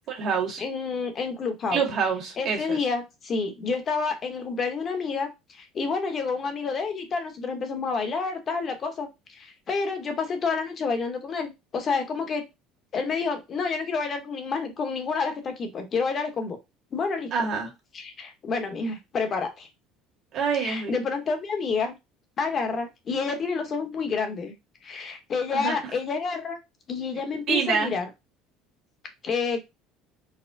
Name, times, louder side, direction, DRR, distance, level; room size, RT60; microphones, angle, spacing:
voice 1, 0.1-0.6 1.7-2.8 17.3-17.7 20.3-21.0 25.5-25.8 27.5-27.9, right 6 dB, 50° right, 0 dB, 1.5 m, -26 dB
voice 2, 0.6-1.8 2.4-12.4 12.9-16.6 16.9-17.3 17.9-19.7 20.5-22.0 22.4-24.5 24.8-26.6 26.9-28.1 29.2-29.6, left 4 dB, 40° left, 6 dB, 0.9 m, -29 dB
4.1 x 2.1 x 2.6 m, 0.22 s
supercardioid pair, 105°, 0 cm